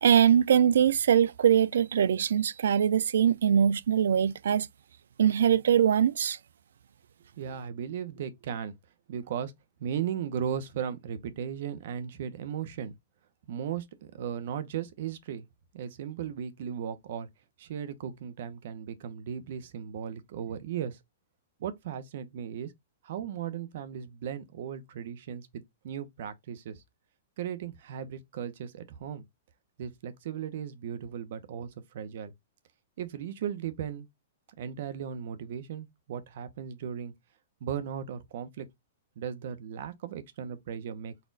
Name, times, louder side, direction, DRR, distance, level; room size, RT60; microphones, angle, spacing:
voice 1, 0.0-4.7 5.2-6.4, right 9 dB, 85° right, 0.3 m, -22 dB
voice 2, 7.4-8.7 9.1-9.5 9.8-12.9 13.5-15.5 15.7-17.3 17.6-21.0 21.6-22.7 23.0-26.8 27.4-29.2 29.8-32.3 33.0-34.1 34.6-37.1 37.6-38.7 39.2-41.1, right 8 dB, 55° right, 0.8 m, -36 dB
4.2 x 2.3 x 3.9 m
hypercardioid pair, 160°, 0 cm